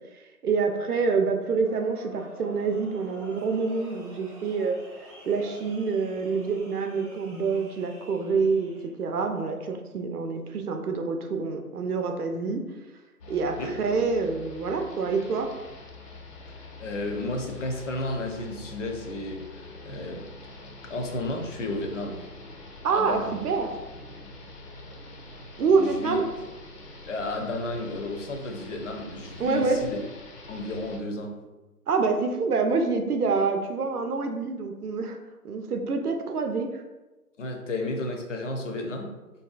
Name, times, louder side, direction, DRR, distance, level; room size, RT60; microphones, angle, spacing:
voice 1, 0.1-4.8 5.2-8.7 9.0-12.6 13.3-15.5 22.8-23.7 25.6-26.2 29.4-29.8 31.9-35.2 35.4-36.8, right 4 dB, 75° right, 5 dB, 0.6 m, -26 dB
sound 1, 1.6-8.9, equal, 25° right, 0.5 m, -47 dB
sound 2, 13.2-31.0, left 2 dB, 85° left, 0.8 m, -45 dB
voice 2, 16.8-19.4 19.8-20.2 20.8-22.2 22.9-23.4 25.8-26.2 27.1-30.0 30.5-31.4 37.4-39.1, left 2 dB, 55° left, 3 dB, 0.6 m, -32 dB
3.4 x 2.6 x 2.4 m, 1.1 s
figure-of-eight pair, 150°, 46 cm